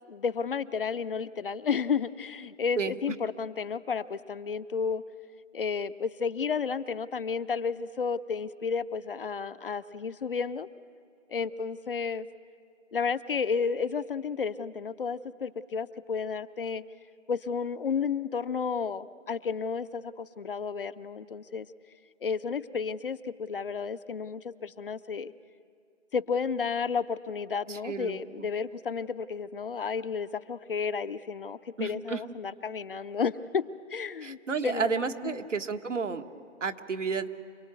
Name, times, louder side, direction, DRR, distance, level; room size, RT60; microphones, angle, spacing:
voice 1, 0.1-5.0 5.5-10.7 11.3-12.3 12.9-16.8 17.3-21.7 22.2-25.3 26.1-35.4, left 5 dB, 50° left, 13 dB, 0.6 m, -32 dB
voice 2, 27.7-28.2 31.8-32.2 34.2-36.2 36.6-37.3, right 5 dB, 80° right, 6 dB, 1.6 m, -31 dB
28.0 x 18.5 x 8.2 m, 2.5 s
hypercardioid pair, 160°, 36 cm